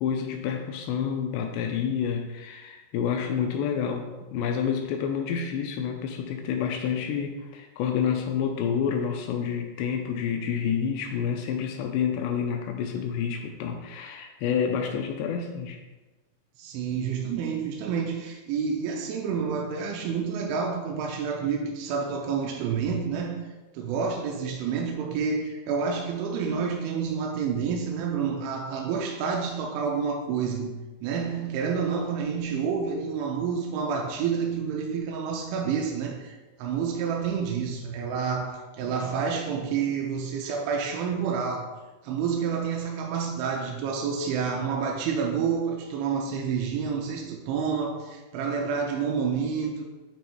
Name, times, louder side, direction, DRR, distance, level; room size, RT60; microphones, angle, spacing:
voice 1, 0.0-15.8, left 7 dB, 85° left, 4 dB, 2.4 m, -28 dB
voice 2, 16.6-23.5 23.7-41.7 42.0-49.9, right 6 dB, 85° right, 1 dB, 2.9 m, -29 dB
8.3 x 3.0 x 4.5 m, 1.2 s
omnidirectional pair, 5.5 m